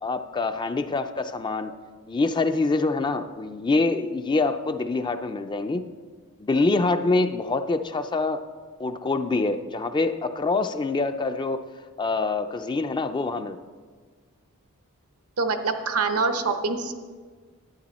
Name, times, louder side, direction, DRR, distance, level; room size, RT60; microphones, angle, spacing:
voice 1, 0.0-1.7 2.1-5.8 6.4-8.4 8.8-11.6 12.0-13.6, left 3 dB, 20° left, 9 dB, 0.4 m, -25 dB
voice 2, 15.4-16.9, right 4 dB, 80° right, 8 dB, 0.9 m, -25 dB
11.5 x 9.5 x 4.1 m, 1.5 s
head